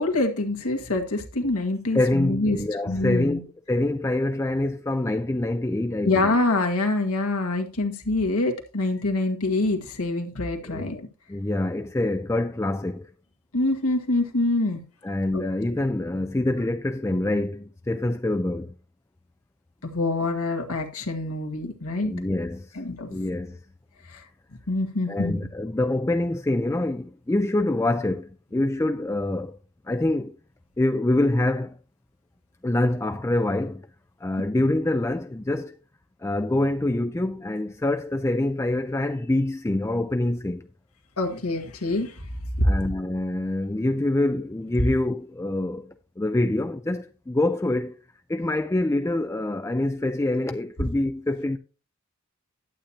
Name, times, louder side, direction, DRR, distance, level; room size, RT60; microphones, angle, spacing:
voice 1, 0.0-2.6 2.9-3.4 6.0-11.1 13.5-14.8 15.3-15.4 19.8-22.1 22.7-23.1 24.1-24.2 24.7-25.4 41.2-42.3 42.6-42.7, left 2 dB, 85° left, 1.8 m, -25 dB
voice 2, 1.9-3.4 3.7-6.4 10.6-10.9 11.3-13.1 15.0-18.7 22.0-22.8 23.1-23.6 25.1-29.6 29.9-30.4 30.8-31.8 32.6-33.9 34.2-35.8 36.2-40.7 42.6-47.9 48.3-51.6, left 1 dB, 15° left, 0.3 m, -25 dB
11.5 x 8.5 x 2.9 m
head